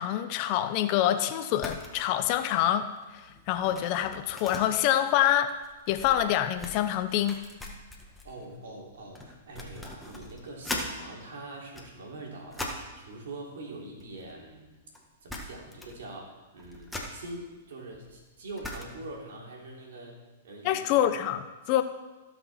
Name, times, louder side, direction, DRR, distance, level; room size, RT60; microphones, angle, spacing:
voice 1, 0.0-2.9 3.5-5.5 5.9-7.4 20.6-21.8, left 11 dB, 45° left, 10 dB, 0.8 m, -26 dB
sound 1, 1.5-1.9 2.2-2.5 2.8-10.9 11.5-13.0 13.9-14.7 14.9-15.0 15.3-16.0 16.3-19.2, left 1 dB, 5° left, 1.6 m, -41 dB
voice 2, 8.2-14.7 15.2-20.2 20.4-20.8 21.6-21.7, right 2 dB, 75° right, -2 dB, 3.4 m, -43 dB
17.0 x 6.1 x 4.4 m, 1.2 s
hypercardioid pair, 120°, 0 cm